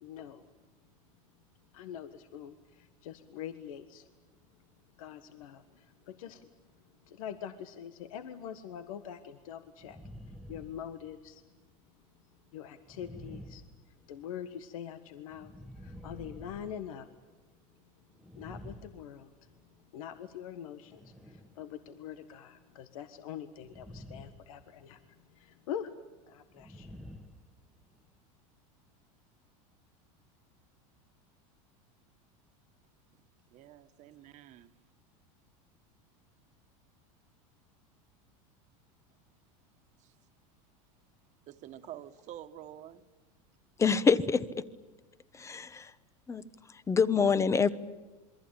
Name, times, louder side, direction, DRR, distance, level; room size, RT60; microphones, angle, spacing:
voice 1, 0.0-0.5 1.7-4.1 5.0-6.5 7.1-10.0 10.5-11.4 12.5-13.6 14.1-17.1 18.3-19.3 19.9-25.9 26.3-26.9, left 9 dB, 80° left, 1.5 m, -44 dB
sound 1, 9.8-11.4 12.9-14.4 15.3-17.4 18.1-19.7 20.8-21.6 23.6-24.5 24.8-25.1 26.5-28.1, equal, ahead, 1.5 m, -49 dB
voice 2, 33.5-34.7 41.5-43.0, right 12 dB, 45° right, 1.7 m, -48 dB
voice 3, 43.8-44.6 45.3-45.9 46.3-46.4 46.9-47.7, left 5 dB, 15° left, 1.0 m, -26 dB
27.5 x 23.0 x 8.9 m
supercardioid pair, 130°, 17 cm